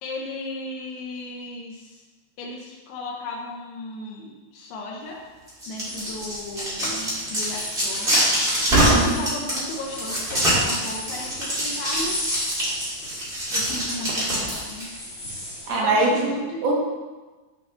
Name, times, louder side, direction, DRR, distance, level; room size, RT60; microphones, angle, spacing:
voice 1, 0.0-2.0 2.4-5.2 5.7-8.2 9.0-12.2 13.5-14.9 15.7-16.6, left 2 dB, 75° left, -1 dB, 3.1 m, -35 dB
sound 1, 5.5-14.8, equal, 20° right, 1.4 m, -24 dB
sound 2, 5.9-15.8, left 1 dB, 25° left, 1.5 m, -38 dB
voice 2, 8.7-9.2 15.7-16.4 16.6-16.7, right 3 dB, 80° right, -3 dB, 4.3 m, -22 dB
13.0 x 5.9 x 3.3 m, 1.2 s
omnidirectional pair, 6.0 m